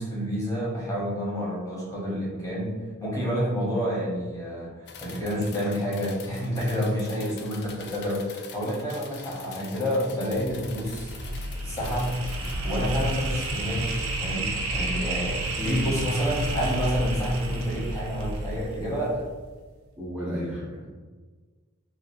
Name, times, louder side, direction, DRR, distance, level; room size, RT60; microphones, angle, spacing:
voice 1, 0.0-2.7 3.0-4.7 5.0-11.1 11.6-12.2 12.6-19.2, equal, 15° left, -6 dB, 1.0 m, -29 dB
sound 1, 4.9-12.6, left 6 dB, 50° left, 0.3 m, -45 dB
sound 2, 10.3-19.4, right 1 dB, 80° right, 0.5 m, -31 dB
voice 2, 15.6-15.9 20.0-20.9, equal, 5° right, -8 dB, 0.7 m, -32 dB
3.1 x 2.7 x 2.3 m, 1.4 s
head